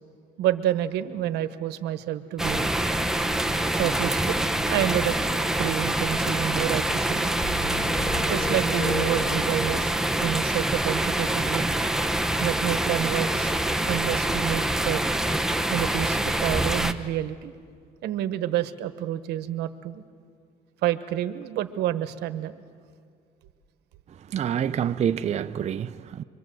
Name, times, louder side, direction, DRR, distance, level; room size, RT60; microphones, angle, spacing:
voice 1, 0.4-2.7 3.8-4.4 4.7-7.4 8.3-11.7 12.4-13.5 13.9-15.1 15.7-17.5 18.0-20.0 20.8-22.6, right 12 dB, 80° right, 1.2 m, -29 dB
sound 1, 2.4-16.9, right 1 dB, 5° right, 0.9 m, -25 dB
sound 2, 7.4-9.8, left 1 dB, 40° left, 5.0 m, -34 dB
voice 2, 24.1-26.2, right 9 dB, 40° right, 0.6 m, -27 dB
25.5 x 23.5 x 7.8 m
cardioid pair, 110°, 17 cm